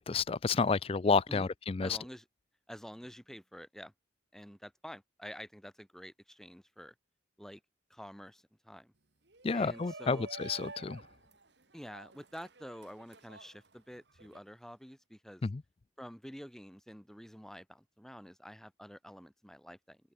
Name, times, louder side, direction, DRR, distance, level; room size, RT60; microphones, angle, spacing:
voice 1, 0.0-2.0 9.4-11.0 15.4-15.6, left 4 dB, 30° left, 0.4 m, -30 dB
voice 2, 1.8-2.2 2.7-3.9 4.3-6.9 7.4-7.6 7.9-8.9 9.5-10.3 11.7-15.4 16.0-20.0, equal, ahead, 6.3 m, -48 dB
Shout, 9.3-14.4, right 3 dB, 65° right, 3.0 m, -50 dB
open air
head